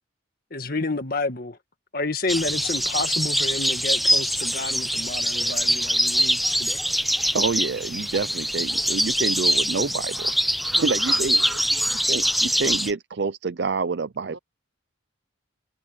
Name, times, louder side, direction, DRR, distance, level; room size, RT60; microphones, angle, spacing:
voice 1, 0.5-1.6 1.9-6.8, left 2 dB, 45° left, 1.8 m, -29 dB
sound 1, 2.3-12.9, equal, ahead, 0.8 m, -23 dB
voice 2, 7.3-10.3 10.8-11.4 12.1-14.4, right 4 dB, 55° right, 0.5 m, -27 dB
voice 3, 10.7-11.9 14.2-14.4, right 3 dB, 75° right, 6.6 m, -39 dB
head